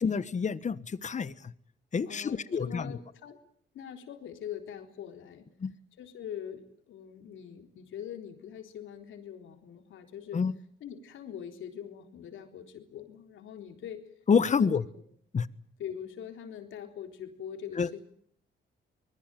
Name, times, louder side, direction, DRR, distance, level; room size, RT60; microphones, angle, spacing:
voice 1, 0.0-1.3 1.9-2.9 5.6-5.7 10.3-10.5 14.3-14.8 15.3-15.5 17.8-17.9, left 6 dB, 35° left, 15 dB, 1.3 m, -27 dB
voice 2, 2.0-3.4 3.7-5.5 6.0-10.4 10.8-14.1 14.4-14.8 15.8-18.0, left 9 dB, 80° left, 6 dB, 3.8 m, -43 dB
24.5 x 21.0 x 9.2 m, 0.65 s
cardioid pair, 90°, 20 cm